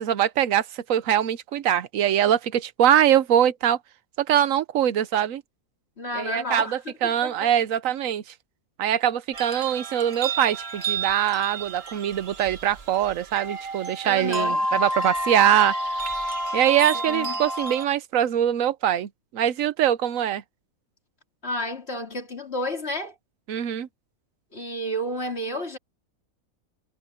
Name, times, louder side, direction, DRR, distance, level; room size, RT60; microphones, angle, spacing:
voice 1, 0.0-3.8 4.2-5.4 6.1-8.2 8.8-15.7 16.5-20.4 23.5-23.9, right 10 dB, 70° right, 1.1 m, -23 dB
voice 2, 6.0-6.8 7.0-7.5 14.0-14.6 16.9-17.4 21.4-23.1 24.5-25.8, left 1 dB, 45° left, 3.9 m, -31 dB
sound 1, 9.3-17.9, right 1 dB, 45° right, 1.4 m, -30 dB
omnidirectional pair, 1.5 m